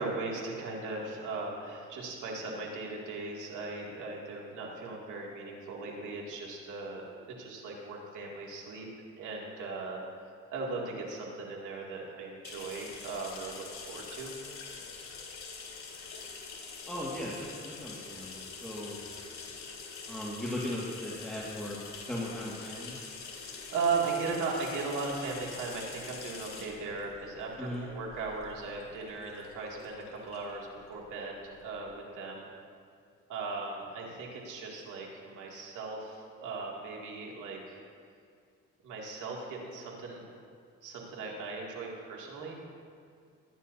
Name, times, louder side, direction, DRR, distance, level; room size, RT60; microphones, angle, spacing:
voice 1, 0.0-8.9 9.2-10.0 10.5-14.3 23.3-32.5 33.3-37.8 38.8-40.2 40.8-42.6, right 4 dB, 85° right, -3 dB, 2.5 m, -37 dB
sound 1, 12.4-31.9, left 5 dB, 65° left, 2.6 m, -45 dB
voice 2, 16.9-19.0 20.1-21.8 22.1-23.0 27.6-27.8, left 1 dB, ahead, -6 dB, 1.9 m, -37 dB
22.5 x 10.0 x 2.8 m, 2.3 s
cardioid pair, 90°, 30 cm